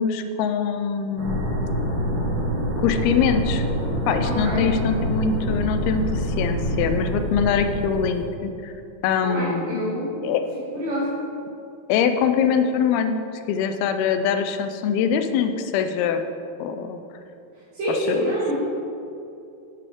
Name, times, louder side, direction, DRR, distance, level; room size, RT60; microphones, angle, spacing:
voice 1, 0.0-1.4 2.8-3.7 4.1-8.7 9.0-9.8 10.2-10.4 11.9-13.1 13.5-16.2 16.6-17.0 18.1-18.4, left 7 dB, 85° left, 8 dB, 2.5 m, -23 dB
sound 1, 1.2-8.2, equal, 85° right, 3.8 m, -26 dB
voice 2, 4.2-4.7 9.2-10.2 10.7-11.2 17.7-18.5, equal, 65° right, -12 dB, 3.8 m, -26 dB
10.5 x 8.4 x 3.6 m, 2.6 s
omnidirectional pair, 4.4 m